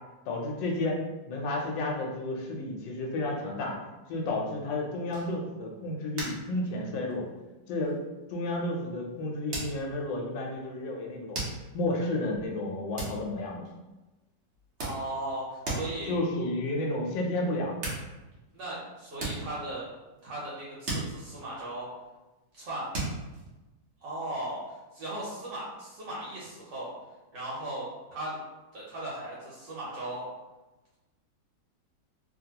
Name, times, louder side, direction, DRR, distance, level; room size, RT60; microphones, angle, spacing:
voice 1, 0.3-1.0 1.3-3.7 4.1-7.3 7.7-8.0 8.3-11.4 11.7-13.6 16.1-17.8, left 2 dB, 80° left, -1 dB, 1.3 m, -31 dB
sound 1, 5.1-5.6 6.2-6.6 6.8-7.3 7.8-8.0 9.5-10.2 11.3-11.9 13.0-13.9 14.5-15.4 15.6-16.1 17.4-17.5 17.8-18.6 19.1-20.5 20.9-22.1 22.9-23.6, right 2 dB, 50° right, 0.9 m, -36 dB
voice 2, 14.8-16.1 18.5-19.9 20.2-21.9 22.5-22.9 24.0-26.9 27.3-28.4 28.7-30.2, right 1 dB, 75° right, -7 dB, 1.4 m, -37 dB
2.8 x 2.7 x 2.8 m, 1.1 s
omnidirectional pair, 2.0 m